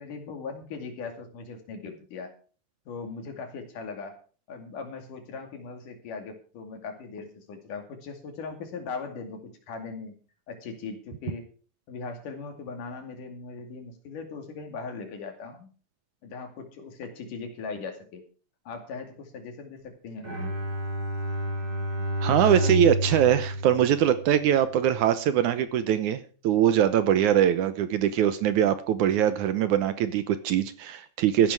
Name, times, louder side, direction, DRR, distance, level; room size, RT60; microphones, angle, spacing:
voice 1, 0.0-2.3 2.9-4.2 4.5-10.1 10.5-11.5 11.9-15.7 16.2-18.2 18.7-20.4, left 4 dB, 70° left, 5 dB, 3.9 m, -39 dB
Bowed string instrument, 20.2-24.6, equal, 25° right, 3.7 m, -29 dB
voice 2, 22.2-31.5, right 10 dB, 70° right, 12 dB, 2.1 m, -22 dB
14.5 x 11.0 x 4.7 m, 0.38 s
omnidirectional pair, 4.0 m